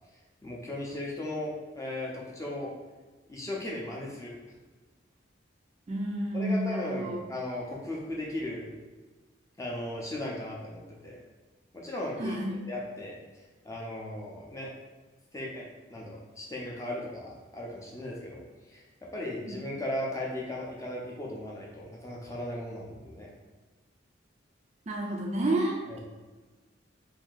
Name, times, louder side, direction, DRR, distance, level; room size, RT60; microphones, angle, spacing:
voice 1, 0.4-2.7 3.3-4.3 6.3-8.7 9.6-11.2 11.7-12.4 12.7-13.2 13.6-14.7 15.3-18.4 18.7-18.8 19.1-23.3 25.9-26.0, left 1 dB, 15° left, -3 dB, 0.5 m, -37 dB
voice 2, 5.9-7.2 12.2-12.6 19.4-19.6 24.9-26.0, right 1 dB, 35° right, 0 dB, 0.3 m, -30 dB
2.7 x 2.6 x 3.8 m, 1.3 s
head